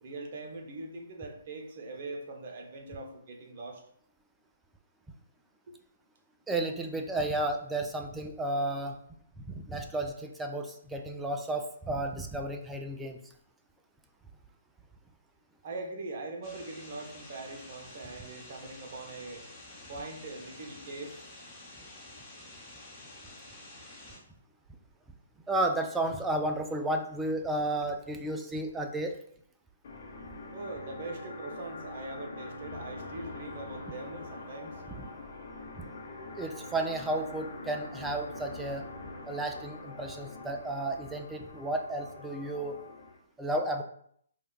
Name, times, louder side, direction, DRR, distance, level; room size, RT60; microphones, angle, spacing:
voice 1, 0.0-3.8 15.6-19.4 19.9-21.2 30.5-34.8, right 2 dB, 45° right, 3 dB, 0.7 m, -42 dB
voice 2, 6.5-9.0 9.5-13.2 25.5-29.2 35.8-35.9 36.4-38.8 39.3-42.8 43.4-43.8, right 1 dB, 10° right, 4 dB, 0.3 m, -32 dB
sound 1, 16.4-24.2, left 2 dB, 20° left, 0.8 m, -49 dB
sound 2, 29.8-43.2, left 2 dB, 50° left, 0.7 m, -44 dB
4.6 x 2.2 x 2.3 m, 0.66 s
figure-of-eight pair, 130°, 0 cm